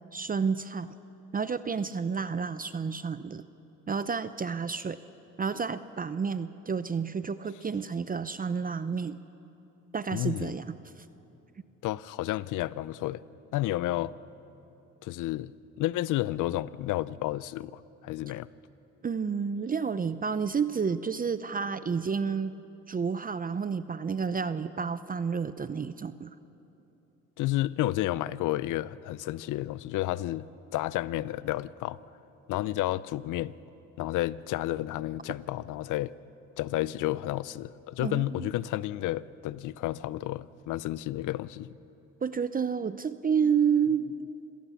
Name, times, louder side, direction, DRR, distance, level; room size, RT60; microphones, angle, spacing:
voice 1, 0.1-1.0 1.3-3.5 3.9-5.0 5.4-9.2 9.9-11.0 19.0-22.5 22.9-26.3 38.0-38.5 42.2-44.3, right 6 dB, 30° right, 13 dB, 0.6 m, -30 dB
voice 2, 10.1-10.5 11.8-13.2 13.5-14.1 15.0-15.5 15.8-18.5 27.4-30.5 30.7-32.0 32.5-33.5 34.0-36.1 36.6-41.7, left 15 dB, 85° left, 18 dB, 0.6 m, -31 dB
26.0 x 18.0 x 7.1 m, 3.0 s
cardioid pair, 90°, 30 cm